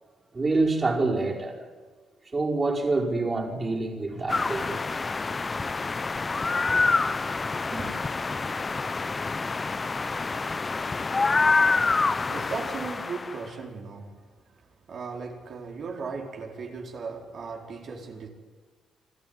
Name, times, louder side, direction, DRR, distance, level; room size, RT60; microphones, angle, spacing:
voice 1, 0.3-1.6 2.3-4.8 7.7-7.9, right 3 dB, 30° right, -1 dB, 5.2 m, -26 dB
sound 1, 4.3-13.4, left 4 dB, 30° left, 0.6 m, -27 dB
voice 2, 11.7-18.3, right 4 dB, 55° right, 0 dB, 4.3 m, -38 dB
27.5 x 12.5 x 9.7 m, 1.5 s
cardioid pair, 90°, 0 cm